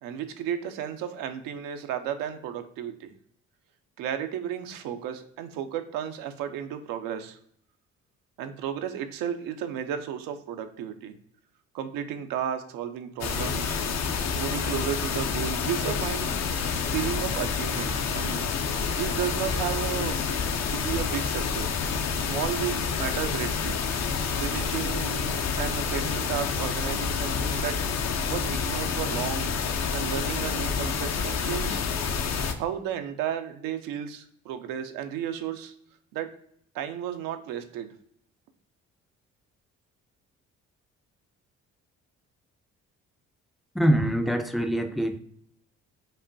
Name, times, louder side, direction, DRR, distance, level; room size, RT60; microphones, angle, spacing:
voice 1, 0.0-3.1 4.0-7.4 8.4-11.1 11.7-13.8 14.3-16.4 16.9-18.4 18.9-23.8 24.4-29.5 29.9-32.2 32.6-35.7 36.1-36.3 36.7-37.9, right 9 dB, 80° right, 7 dB, 0.5 m, -33 dB
sound 1, 13.2-32.5, left 5 dB, 50° left, 0.6 m, -28 dB
voice 2, 43.7-45.2, right 1 dB, ahead, 7 dB, 0.4 m, -24 dB
5.2 x 2.2 x 2.5 m, 0.66 s
supercardioid pair, 60°, 34 cm